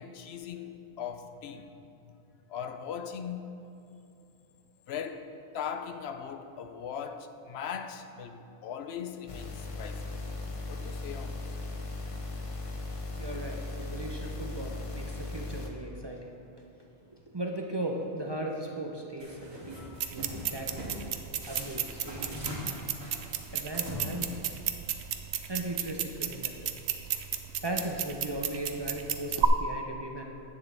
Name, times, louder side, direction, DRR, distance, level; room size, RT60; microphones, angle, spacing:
voice 1, 0.0-1.7 2.5-3.5 4.9-10.2 10.7-11.5 19.7-20.2, left 7 dB, 75° left, 7 dB, 0.8 m, -39 dB
sound 1, 9.3-15.7, left 2 dB, 35° left, 0.7 m, -38 dB
voice 2, 13.2-16.3 17.1-21.0 21.4-22.5 23.5-24.5 25.5-26.7 27.6-30.2, right 1 dB, 30° right, 0 dB, 0.6 m, -37 dB
sound 2, 19.2-19.8 20.2-21.0 21.4-24.6, equal, 70° right, 2.6 m, -41 dB
sound 3, 20.0-29.5, right 10 dB, 85° right, 0.9 m, -33 dB
10.5 x 8.7 x 3.3 m, 2.7 s
omnidirectional pair, 1.1 m